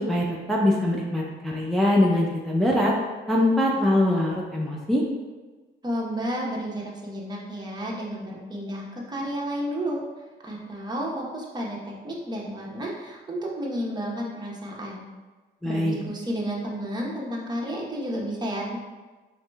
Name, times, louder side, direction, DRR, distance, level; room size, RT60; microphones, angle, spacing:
voice 1, 0.0-2.9 3.3-5.0 15.6-16.0, left 1 dB, ahead, -3 dB, 0.5 m, -23 dB
voice 2, 5.8-10.0 10.4-15.0 15.6-18.8, equal, 20° right, -3 dB, 0.9 m, -31 dB
4.7 x 3.1 x 2.3 m, 1.3 s
cardioid pair, 90°, 20 cm